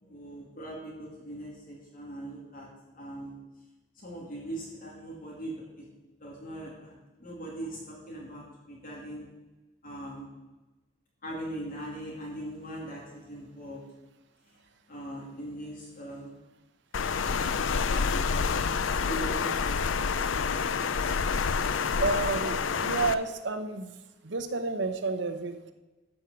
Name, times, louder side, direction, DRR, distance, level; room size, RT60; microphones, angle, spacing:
voice 1, 0.0-3.4 3.9-5.9 6.2-9.3 9.8-10.3 11.2-13.8 14.5-14.6 14.9-16.3 17.1-18.3 19.0-20.4, right 1 dB, 50° left, -3 dB, 2.7 m, -41 dB
Water, 16.9-23.1, left 5 dB, 80° left, 0.5 m, -28 dB
voice 2, 22.0-23.9 24.2-25.7, right 3 dB, 65° right, 8 dB, 1.0 m, -30 dB
12.5 x 5.4 x 6.9 m, 1.1 s
head